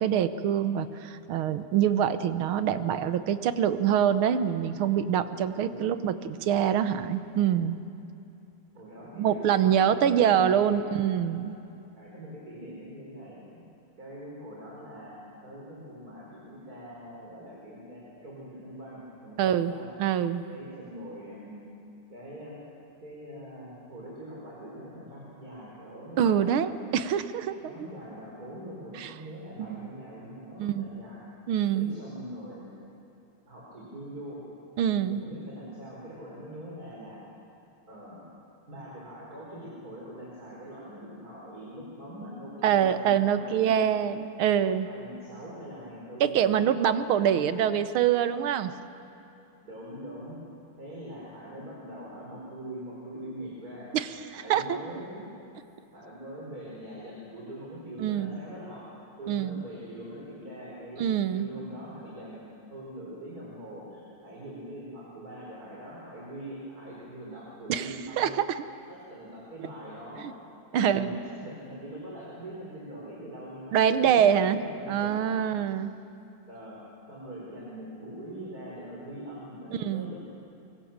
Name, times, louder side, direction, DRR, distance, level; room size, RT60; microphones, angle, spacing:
voice 1, 0.0-7.8 9.2-11.6 19.4-19.7 20.0-20.4 26.2-27.7 29.0-29.1 29.6-29.9 30.6-31.0 31.5-31.9 34.8-35.2 42.6-44.9 46.2-48.7 53.9-54.8 58.0-58.4 59.3-59.6 61.0-61.5 67.7-68.3 70.7-71.2 73.7-75.9 79.8-80.1, right 9 dB, 80° right, 11 dB, 1.7 m, -25 dB
voice 2, 5.6-6.1 8.7-9.6 9.9-10.9 12.0-13.7 14.0-19.9 20.5-21.7 22.1-22.6 23.0-26.8 27.6-31.2 31.7-32.7 33.5-34.4 35.0-37.2 37.9-38.2 38.7-44.1 44.9-46.7 47.2-47.5 49.6-50.4 50.8-53.9 54.3-55.2 55.9-58.8 59.2-61.0 61.3-62.4 62.7-68.3 68.9-70.3 70.7-75.3 76.5-76.8 77.1-80.1, right 1 dB, 45° right, -5 dB, 5.1 m, -43 dB
24.5 x 23.5 x 7.3 m, 2.7 s
omnidirectional pair, 2.3 m